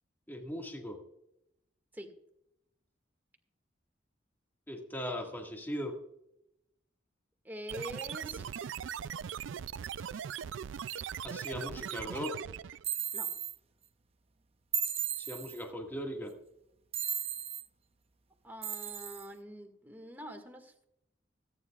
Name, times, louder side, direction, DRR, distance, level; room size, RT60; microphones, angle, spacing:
voice 1, 0.3-1.0 4.7-6.0 11.2-12.5 15.2-16.3, equal, 10° left, 1 dB, 1.9 m, -39 dB
voice 2, 7.4-8.5 13.1-13.3 18.4-20.8, equal, 10° right, 3 dB, 1.9 m, -45 dB
sound 1, 7.7-12.9, right 8 dB, 80° right, 0.4 m, -40 dB
sound 2, 12.8-13.5 14.7-15.6 16.9-17.6 18.6-19.3, right 7 dB, 30° right, 0.7 m, -35 dB
25.5 x 9.8 x 2.4 m, 0.79 s
head